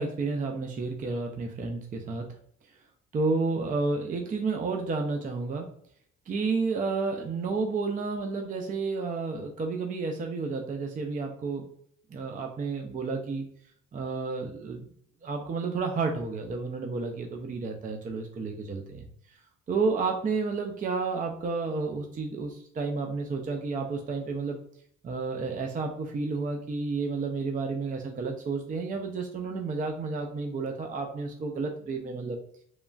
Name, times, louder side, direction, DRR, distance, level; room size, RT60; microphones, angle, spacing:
voice 1, 0.0-2.3 3.1-5.7 6.3-11.6 12.1-13.5 13.9-14.9 15.2-19.1 19.7-24.6 25.0-32.4, right 4 dB, 30° right, 3 dB, 0.4 m, -31 dB
3.1 x 2.3 x 2.2 m, 0.66 s
cardioid pair, 90°, 30 cm